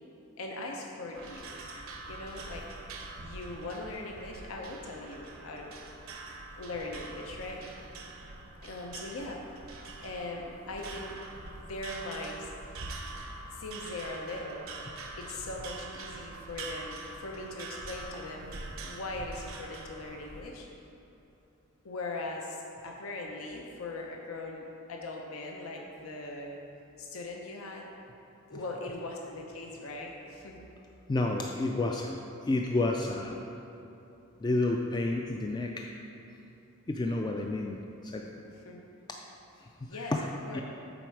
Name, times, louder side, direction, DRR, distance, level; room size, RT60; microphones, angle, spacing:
voice 1, 0.4-1.6 2.1-2.7 3.2-5.7 6.6-7.6 8.6-9.4 10.0-11.2 11.6-12.5 13.5-14.6 15.2-18.5 18.8-20.7 21.8-26.6 27.0-27.9 28.5-30.7 38.4-38.8 39.9-40.1 40.5-40.6, left 2 dB, 80° left, 0 dB, 0.7 m, -40 dB
sound 1, 1.1-20.4, right 3 dB, 75° right, 0.7 m, -44 dB
voice 2, 31.1-33.4 34.4-35.9 36.9-38.2 39.8-40.3 40.5-40.6, left 2 dB, 20° left, 1 dB, 0.3 m, -30 dB
7.8 x 4.2 x 4.6 m, 3.0 s
head